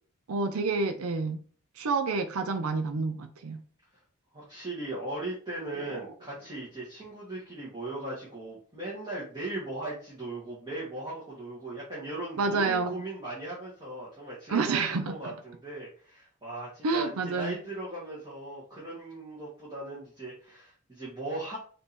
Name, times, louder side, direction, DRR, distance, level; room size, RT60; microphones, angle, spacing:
voice 1, 0.3-1.4 1.8-3.6 5.8-6.0 12.4-13.0 14.5-15.2 16.8-17.5, right 4 dB, 75° right, 0.5 m, -29 dB
voice 2, 4.3-21.6, right 2 dB, 20° right, 1.7 m, -38 dB
5.0 x 2.9 x 3.4 m
head